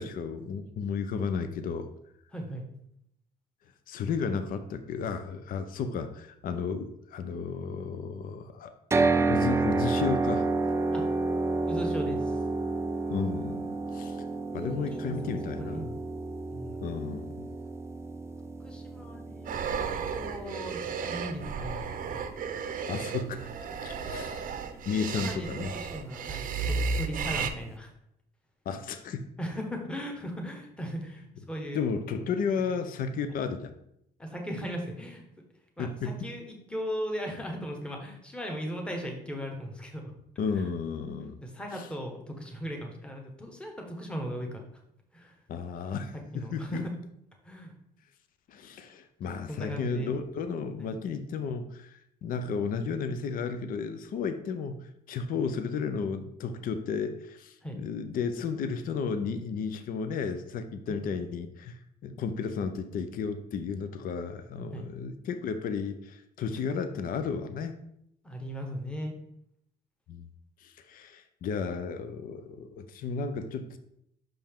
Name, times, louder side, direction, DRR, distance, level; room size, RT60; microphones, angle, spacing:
voice 1, 0.0-1.9 3.9-8.7 9.1-10.5 13.1-14.3 14.5-15.9 16.8-17.5 22.9-23.5 23.8-24.4 24.9-25.7 28.7-29.2 31.7-33.7 35.8-36.2 40.4-41.4 41.7-41.9 45.5-46.8 48.5-67.8 70.1-70.3 70.6-73.8, left 5 dB, 55° left, 9 dB, 0.6 m, -33 dB
voice 2, 2.3-2.6 10.9-11.0 11.7-12.4 14.5-15.9 16.5-17.0 18.6-19.8 20.1-22.1 24.9-27.9 29.4-31.8 32.7-32.8 34.2-35.2 35.8-40.1 40.5-40.7 41.4-44.6 45.1-45.4 46.3-47.0 47.4-47.7 49.5-50.1 50.8-50.9 57.6-57.8 60.9-61.0 64.7-64.8 68.2-69.1, equal, 5° left, 1 dB, 1.1 m, -38 dB
sound 1, 8.9-23.0, right 3 dB, 15° right, 0.3 m, -31 dB
sound 2, 19.5-27.5, right 5 dB, 55° right, 0.6 m, -34 dB
5.8 x 5.3 x 3.6 m, 0.76 s
cardioid pair, 110°, 17 cm